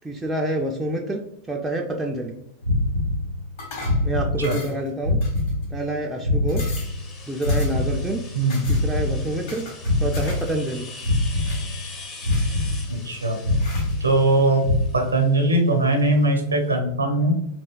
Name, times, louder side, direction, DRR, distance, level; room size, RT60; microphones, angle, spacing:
voice 1, 0.0-1.2 1.5-2.4 4.0-5.2 5.7-6.7 7.3-8.2 8.7-9.6 10.0-10.9, right 1 dB, 10° right, 0 dB, 0.3 m, -27 dB
sound 1, 2.6-3.6 3.8-4.8 5.0-7.2 7.4-9.6 9.8-10.8 11.0-12.0 12.2-13.2 13.4-14.4 14.6-14.9, left 2 dB, 75° left, 0.8 m, -24 dB
sound 2, 3.6-4.1 4.4-4.9 5.2-5.8 6.2-6.3 6.5-7.0 7.4-7.9 8.5-8.8 9.5-10.5 10.8-11.6 12.2-12.9 13.6-13.9, left 3 dB, 50° left, 1.3 m, -39 dB
sound 3, 6.8-16.4, left 3 dB, 25° left, 0.6 m, -43 dB
voice 2, 12.9-13.4 14.0-14.6 14.9-17.3, right 2 dB, 75° right, 4 dB, 0.6 m, -20 dB
3.2 x 2.7 x 2.2 m, 0.78 s
figure-of-eight pair, 90°, 0 cm